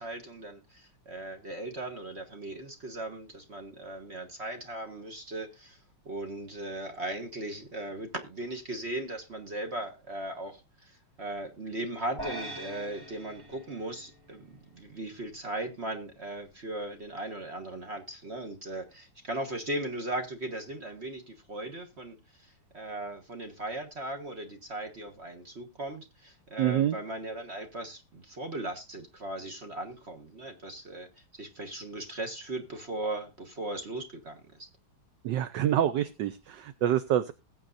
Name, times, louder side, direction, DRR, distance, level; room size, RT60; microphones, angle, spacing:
voice 1, 0.0-5.8 6.0-31.1 31.3-34.7, right 1 dB, 35° right, 1.3 m, -38 dB
sound 1, 12.2-14.7, right 1 dB, 10° right, 1.4 m, -42 dB
voice 2, 26.6-26.9 35.2-37.3, right 11 dB, 70° right, 1.1 m, -27 dB
20.5 x 7.4 x 2.5 m
omnidirectional pair, 2.4 m